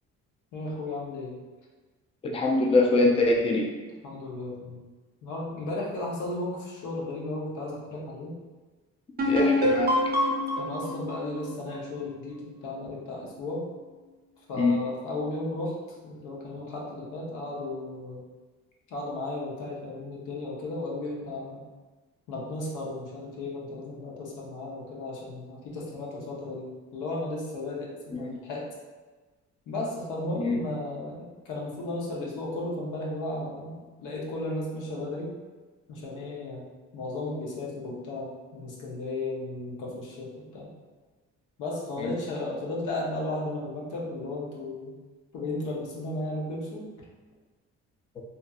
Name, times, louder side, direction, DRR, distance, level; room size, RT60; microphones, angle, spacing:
voice 1, 0.5-1.3 4.0-4.8 5.2-8.3 10.6-13.6 14.5-15.7 16.0-18.2 18.9-21.7 22.3-28.6 29.7-35.3 35.9-36.6 36.9-40.7 41.6-45.0 45.3-46.9, left 2 dB, 90° left, -3 dB, 0.7 m, -34 dB
voice 2, 2.2-3.7 9.2-9.9 14.6-14.8 28.1-28.4 30.4-30.6 42.0-42.1, left 2 dB, 20° left, 1 dB, 0.3 m, -23 dB
sound 1, 9.2-12.8, left 1 dB, 30° right, 0.6 m, -27 dB
2.6 x 2.5 x 2.3 m, 1.3 s
cardioid pair, 90°, 30 cm